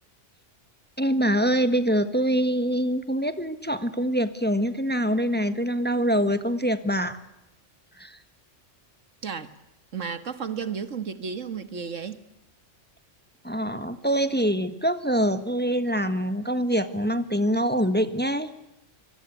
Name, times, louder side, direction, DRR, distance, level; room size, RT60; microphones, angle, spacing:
voice 1, 1.0-7.2 8.0-8.2 13.4-18.5, equal, 10° left, 1.5 m, -24 dB
voice 2, 9.2-9.5 9.9-12.2, right 6 dB, 80° right, 2.0 m, -33 dB
26.0 x 22.5 x 8.3 m
omnidirectional pair, 1.3 m